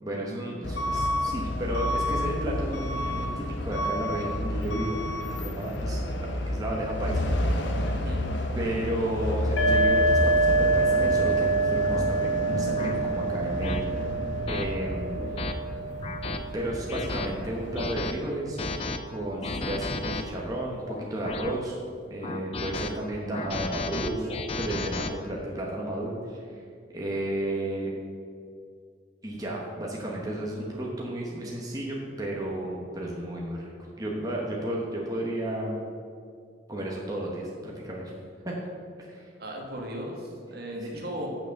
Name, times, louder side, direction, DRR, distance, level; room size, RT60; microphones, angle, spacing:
voice 1, 0.0-5.0 5.4-7.7 8.5-14.0 14.5-15.1 15.4-15.6 16.5-18.6 19.1-21.8 22.1-24.3 24.6-26.4 26.9-27.9 29.2-35.8 36.7-38.1 38.4-38.6 39.0-39.3 40.8-40.9, right 1 dB, 20° right, -3 dB, 1.0 m, -33 dB
Truck / Alarm, 0.6-17.9, left 1 dB, 75° left, 0.9 m, -31 dB
voice 2, 7.9-8.4 19.4-19.7 39.4-41.3, equal, 55° right, 0 dB, 1.5 m, -37 dB
sound 1, 9.6-17.1, right 2 dB, 90° left, 1.2 m, -26 dB
sound 2, 11.1-11.2 11.9-12.1 12.8-12.9 13.6-13.8 14.5-14.6 15.2-15.5 16.0-16.4 16.9-17.3 17.8-18.1 18.6-19.0 19.4-20.2 20.9-21.6 22.2-22.9 23.3-25.1, left 3 dB, 30° left, 0.5 m, -33 dB
6.8 x 6.2 x 6.5 m, 2.3 s
head